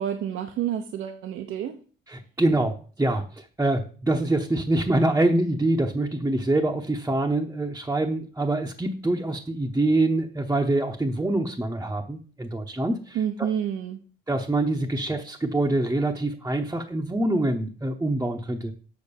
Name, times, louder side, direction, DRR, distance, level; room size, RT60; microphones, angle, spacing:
voice 1, 0.0-1.8 13.1-14.0, right 9 dB, 80° right, 5 dB, 0.8 m, -29 dB
voice 2, 2.1-13.2 14.3-18.7, right 2 dB, 15° right, 1 dB, 0.9 m, -25 dB
6.9 x 4.8 x 6.9 m, 0.40 s
cardioid pair, 90°, 20 cm